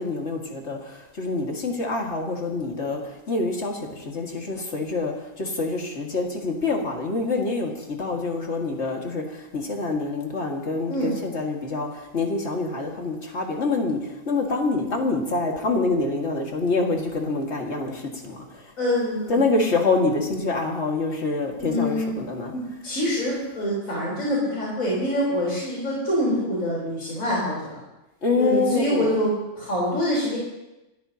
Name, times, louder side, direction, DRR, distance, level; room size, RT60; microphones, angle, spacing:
voice 1, 0.0-14.0 14.3-18.7 19.3-22.5 28.2-29.1, left 3 dB, 55° left, 1 dB, 2.3 m, -26 dB
voice 2, 18.8-19.4 21.6-22.1 22.5-27.8 28.4-30.4, equal, 85° left, -6 dB, 4.6 m, -25 dB
27.5 x 14.0 x 2.9 m, 0.98 s
omnidirectional pair, 1.4 m